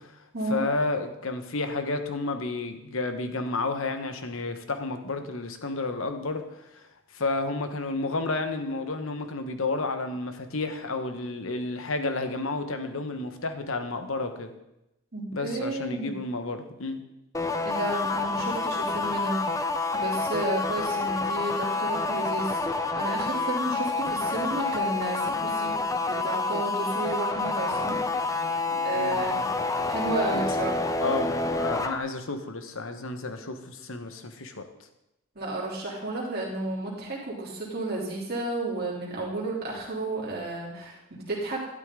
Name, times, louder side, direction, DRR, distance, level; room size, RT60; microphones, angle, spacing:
voice 1, 0.0-14.5 15.3-17.0 28.7-29.4 30.3-30.5 31.0-34.6, left 3 dB, 65° left, 7 dB, 1.1 m, -31 dB
voice 2, 15.1-16.1 17.6-19.4 19.9-28.0 28.8-29.5 29.9-30.8 35.3-41.6, right 2 dB, 45° right, -5 dB, 3.1 m, -32 dB
sound 1, 17.3-32.0, left 3 dB, 15° left, 0.6 m, -28 dB
12.0 x 12.0 x 3.7 m, 0.89 s
head